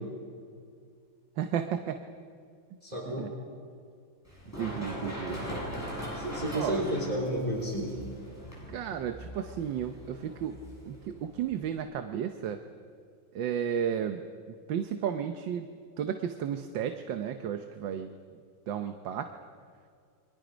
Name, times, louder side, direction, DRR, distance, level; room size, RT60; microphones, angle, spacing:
voice 1, 1.4-2.0 3.1-3.3 4.6-5.4 6.5-6.8 8.7-10.5 10.8-12.6 13.3-14.2 14.5-15.7 16.0-18.1 18.7-19.3, right 9 dB, 75° right, 7 dB, 1.6 m, -33 dB
voice 2, 2.8-3.3 6.1-7.9, equal, 20° right, -2 dB, 4.0 m, -31 dB
Run, 4.2-11.8, equal, 10° left, 6.9 m, -40 dB
30.0 x 24.0 x 5.1 m, 2.2 s
omnidirectional pair, 2.1 m